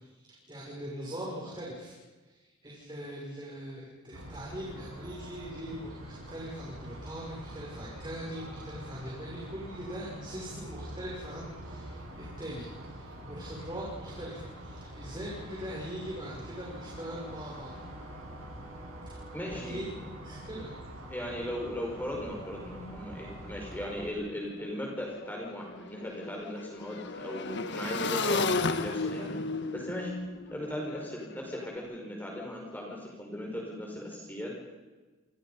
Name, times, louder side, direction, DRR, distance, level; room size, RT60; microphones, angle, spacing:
voice 1, 0.1-1.9 2.2-17.8 19.0-19.2 19.5-20.7, equal, 20° right, -4 dB, 6.7 m, -41 dB
sound 1, 4.1-24.1, right 1 dB, 80° right, 7.8 m, -45 dB
voice 2, 19.3-19.9 21.1-29.4 29.7-30.2 30.5-34.5, equal, 10° left, -1 dB, 5.1 m, -37 dB
Motorcycle / Engine, 24.2-24.3 24.5-31.7, left 3 dB, 55° left, 1.6 m, -34 dB
28.5 x 28.5 x 5.6 m, 1.2 s
head